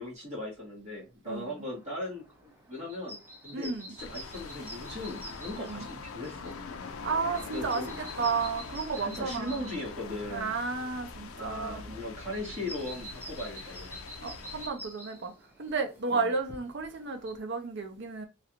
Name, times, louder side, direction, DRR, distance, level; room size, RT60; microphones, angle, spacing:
voice 1, 0.0-3.2 3.4-3.7 4.0-6.5 7.5-7.9 9.0-10.5 11.4-14.0 16.1-16.3, left 1 dB, 30° right, 1.8 m, -38 dB
voice 2, 1.2-1.6 3.5-3.9 5.6-5.8 7.0-9.7 10.3-12.0 14.2-15.3 15.6-18.3, right 4 dB, 55° right, 0.6 m, -33 dB
sound 1, 1.4-17.3, equal, 10° right, 0.7 m, -48 dB
sound 2, 4.0-14.7, left 4 dB, 70° left, 0.4 m, -43 dB
3.1 x 2.5 x 2.8 m
head